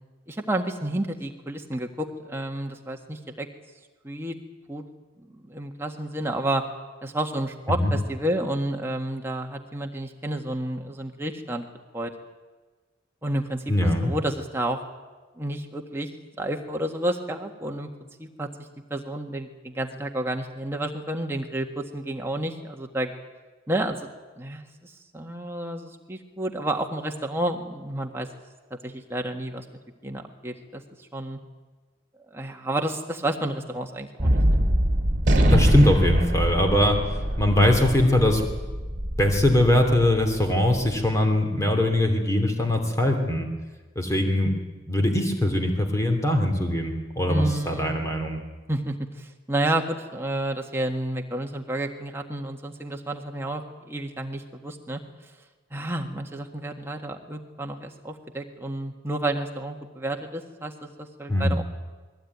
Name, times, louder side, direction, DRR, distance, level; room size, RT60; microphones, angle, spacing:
voice 1, 0.3-3.5 4.0-4.4 4.7-4.8 5.2-6.6 7.0-11.6 11.9-12.1 13.2-13.6 14.0-14.8 15.4-16.1 16.4-17.9 18.2-18.5 18.9-23.1 23.7-24.1 24.4-28.3 28.8-29.6 30.0-30.8 31.1-31.4 32.3-34.6 47.3-47.9 48.7-55.0 55.7-61.6, right 1 dB, 15° right, 2 dB, 1.6 m, -30 dB
voice 2, 13.7-14.1 35.5-37.0 37.4-38.4 39.2-43.5 44.0-44.5 44.9-48.4 61.3-61.5, left 1 dB, 15° left, 4 dB, 2.8 m, -21 dB
Gunshot gunfire, 34.2-40.8, equal, 40° right, 2.9 m, -23 dB
21.0 x 16.0 x 9.5 m, 1.3 s
head